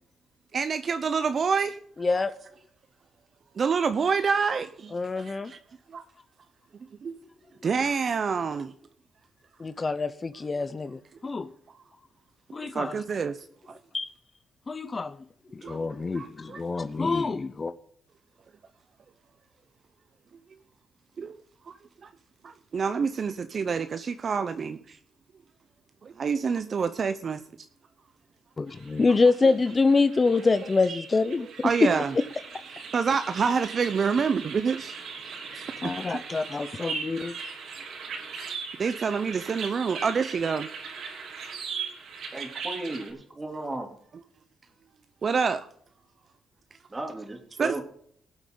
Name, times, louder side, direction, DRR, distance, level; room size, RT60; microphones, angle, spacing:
voice 1, 0.5-1.8 3.6-5.6 5.9-6.0 7.0-7.1 7.6-8.7 12.5-13.8 15.6-15.8 16.1-16.6 21.2-21.3 21.7-21.8 22.0-22.1 22.4-25.0 26.0-27.4 31.4-32.1 32.9-34.9 35.2-35.9 38.8-40.7 45.2-45.7 47.6-47.8, right 5 dB, 45° right, 0.7 m, -27 dB
voice 2, 2.0-2.3 4.9-5.5 9.6-11.5 12.5-12.9 13.9-14.1 14.7-15.2 15.5-17.7 28.6-31.7 35.8-37.3, left 3 dB, 30° left, 0.6 m, -26 dB
sound 1, 28.7-43.1, right 5 dB, 70° right, 3.1 m, -39 dB
voice 3, 42.3-43.9 46.9-47.8, right 2 dB, 20° right, 2.9 m, -35 dB
18.5 x 8.1 x 3.9 m
cardioid pair, 90°, 0 cm